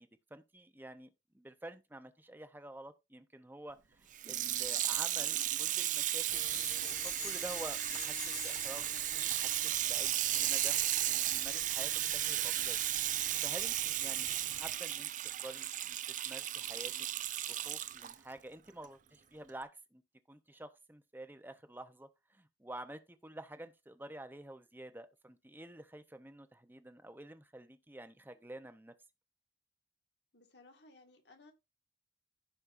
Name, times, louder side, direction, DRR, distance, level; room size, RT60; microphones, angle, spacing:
voice 1, 0.0-8.9 9.3-12.8 13.4-15.1 15.4-16.0 16.2-16.9 17.5-20.0 20.3-28.9, right 1 dB, 10° right, 0.8 m, -49 dB
Water tap faucet / Sink (filling or washing), 4.1-18.1 18.8-18.9, right 12 dB, 45° right, 0.5 m, -34 dB
sound 1, 6.3-14.7, left 7 dB, 40° left, 1.2 m, -50 dB
voice 2, 30.3-31.5, left 2 dB, 65° left, 2.0 m, -60 dB
16.0 x 5.4 x 2.6 m
head